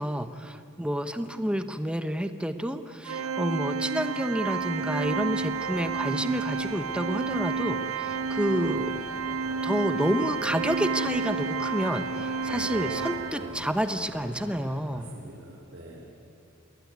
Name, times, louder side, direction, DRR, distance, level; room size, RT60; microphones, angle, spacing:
voice 1, 0.0-8.9 9.6-15.1, equal, 5° right, 9 dB, 1.1 m, -29 dB
Organ, 3.1-13.8, right 5 dB, 70° right, 0.7 m, -31 dB
sound 1, 4.4-14.8, left 1 dB, 55° left, 4.4 m, -45 dB
voice 2, 12.5-12.9 13.3-13.5 14.9-16.1, right 1 dB, 55° right, -3 dB, 4.4 m, -44 dB
28.0 x 20.5 x 9.5 m, 2.5 s
head